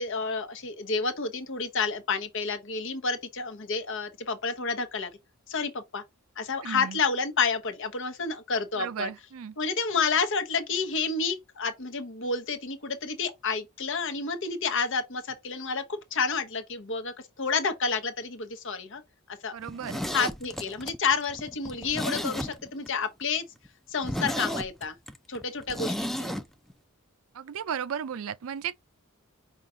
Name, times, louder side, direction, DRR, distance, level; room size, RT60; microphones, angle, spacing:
voice 1, 0.0-5.1 5.5-6.0 6.4-9.1 9.6-15.8 16.1-19.0 19.3-19.6 20.1-23.4 23.9-24.9 25.3-26.3, left 5 dB, 60° left, 1.0 m, -30 dB
voice 2, 6.6-7.0 8.8-9.6 19.5-20.0 27.3-28.7, right 8 dB, 65° right, 0.4 m, -34 dB
Zipper (clothing), 19.6-22.9 23.2-23.3 23.7-23.8 24.0-26.4 26.7-26.8, equal, ahead, 0.4 m, -33 dB
5.4 x 2.5 x 3.7 m
head